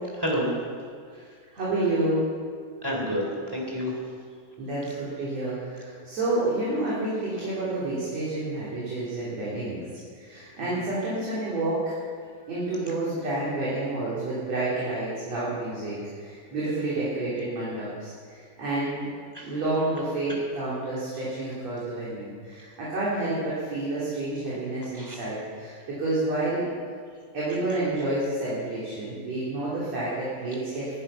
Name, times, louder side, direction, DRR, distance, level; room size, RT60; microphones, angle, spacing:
voice 1, 0.1-0.5 2.8-4.0 10.6-10.8 19.3-19.5 24.9-25.2, equal, 5° right, -2 dB, 2.5 m, -29 dB
voice 2, 1.5-2.3 4.6-9.8 10.1-11.9 12.5-19.0 19.4-26.7 27.3-31.0, right 2 dB, 45° right, -8 dB, 4.3 m, -29 dB
20.5 x 11.0 x 5.6 m, 2.1 s
omnidirectional pair, 4.3 m